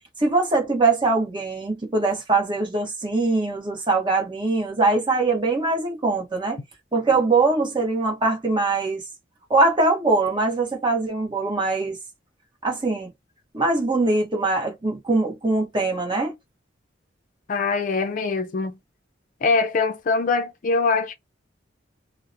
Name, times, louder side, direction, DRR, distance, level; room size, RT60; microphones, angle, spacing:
voice 1, 0.2-6.6 6.9-9.0 9.5-11.9 12.6-13.1 13.5-16.3, right 3 dB, 25° right, 0.9 m, -22 dB
voice 2, 17.5-18.7 19.4-21.1, left 4 dB, 45° left, 0.4 m, -23 dB
2.8 x 2.0 x 2.4 m
head